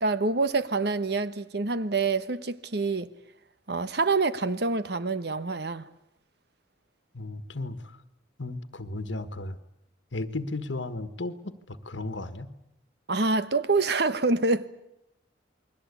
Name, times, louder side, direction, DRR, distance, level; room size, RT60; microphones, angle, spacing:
voice 1, 0.0-3.1 3.7-5.9 13.1-14.7, right 3 dB, 60° right, 1.2 m, -26 dB
voice 2, 7.1-8.0 8.4-9.6 10.1-12.5, left 2 dB, 80° left, 1.6 m, -35 dB
29.0 x 21.5 x 8.4 m
head